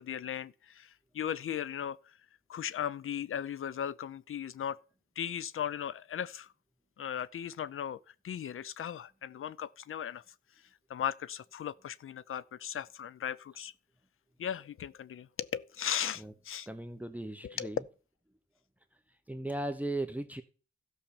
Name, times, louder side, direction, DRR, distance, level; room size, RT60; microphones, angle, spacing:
voice 1, 0.0-2.2 2.5-4.8 5.2-6.5 7.0-10.2 10.9-13.7 14.4-16.7 17.4-17.7, left 9 dB, 90° left, 0.6 m, -37 dB
voice 2, 16.7-17.8 19.3-20.4, right 1 dB, 5° right, 0.9 m, -37 dB
13.5 x 5.7 x 7.0 m
wide cardioid pair, 85°, 21 cm